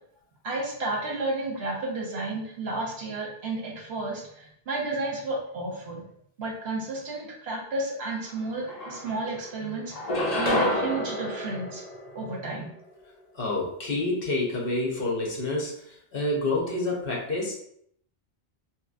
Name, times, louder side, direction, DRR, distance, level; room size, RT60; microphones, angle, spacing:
voice 1, 0.4-6.1 6.4-11.8 12.1-12.7, right 2 dB, 75° right, -1 dB, 1.1 m, -32 dB
sound 1, 8.3-8.4 8.7-9.5 9.9-12.5, left 1 dB, 45° left, 0.7 m, -29 dB
voice 2, 13.3-17.5, left 2 dB, 60° left, -2 dB, 1.0 m, -28 dB
2.9 x 2.9 x 2.4 m, 0.67 s
omnidirectional pair, 1.1 m